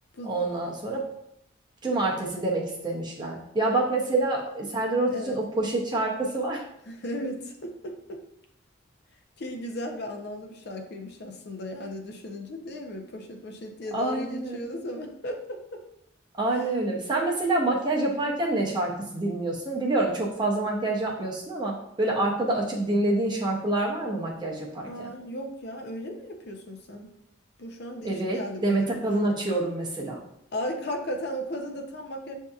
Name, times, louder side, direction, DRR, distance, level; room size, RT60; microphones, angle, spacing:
voice 1, 0.3-1.0 1.8-6.6 13.9-14.7 16.4-25.1 28.0-30.2, right 2 dB, 20° right, -2 dB, 0.6 m, -27 dB
voice 2, 5.1-5.4 6.9-8.2 9.4-15.8 16.5-16.7 24.8-27.1 27.6-29.0 30.5-32.4, equal, 50° left, 3 dB, 0.5 m, -36 dB
7.2 x 2.7 x 2.3 m, 0.77 s
head